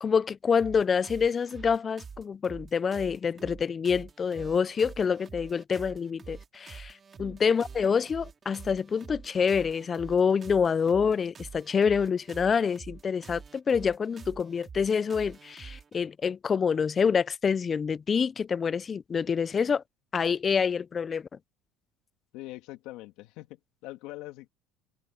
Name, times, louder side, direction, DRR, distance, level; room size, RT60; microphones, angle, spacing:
voice 1, 0.0-6.9 7.2-19.8 20.1-21.3, left 6 dB, 25° left, 0.4 m, -27 dB
Jace Atkins, 0.6-16.0, right 5 dB, 25° right, 2.1 m, -46 dB
voice 2, 22.3-24.5, left 18 dB, 70° left, 2.7 m, -43 dB
cardioid pair, 140°, 0 cm